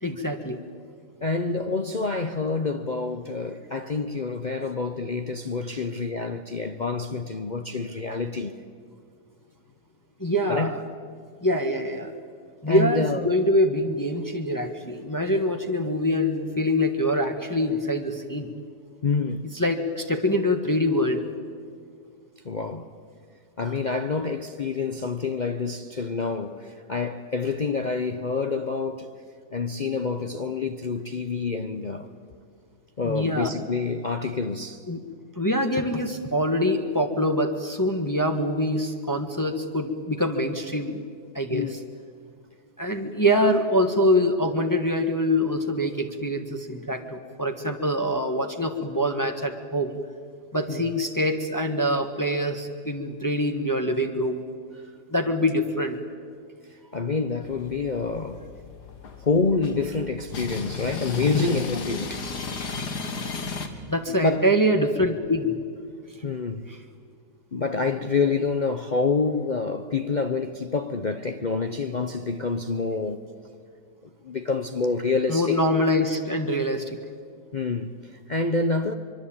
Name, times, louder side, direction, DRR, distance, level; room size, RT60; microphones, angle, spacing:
voice 1, 0.0-0.6 10.2-10.8 11.4-12.1 12.6-18.5 19.5-21.3 33.0-33.6 34.9-35.0 35.4-41.0 41.3-41.8 42.8-50.0 50.5-54.4 55.1-56.0 61.3-61.4 63.9-65.6 66.7-66.8 75.3-77.0, left 1 dB, 15° left, 1.4 m, -24 dB
voice 2, 1.2-8.6 10.5-10.7 12.7-13.3 19.0-19.5 22.4-22.9 23.6-29.1 29.5-32.1 33.0-34.8 41.5-41.8 50.7-50.8 54.7-54.8 56.7-58.5 59.2-62.2 63.4-63.5 64.1-64.5 66.2-66.7 67.5-73.3 74.2-75.6 77.5-78.9, left 4 dB, 35° left, 0.7 m, -27 dB
sound 1, 57.4-63.7, left 4 dB, 80° left, 2.3 m, -35 dB
24.5 x 23.0 x 8.8 m
omnidirectional pair, 1.7 m